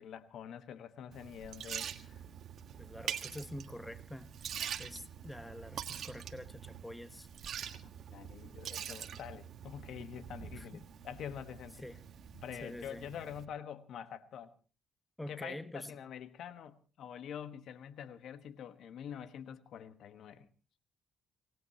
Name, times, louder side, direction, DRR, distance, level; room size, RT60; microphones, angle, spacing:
voice 1, 0.0-2.2 7.8-11.8 12.3-14.5 15.3-20.5, left 8 dB, 75° left, 1.3 m, -46 dB
Liquid, 1.1-13.4, right 8 dB, 65° right, 1.5 m, -45 dB
voice 2, 2.8-7.3 10.6-10.9 11.8-12.0 12.6-13.1 15.2-15.9, left 1 dB, 10° left, 1.1 m, -46 dB
26.5 x 18.5 x 2.9 m
cardioid pair, 90°, 0 cm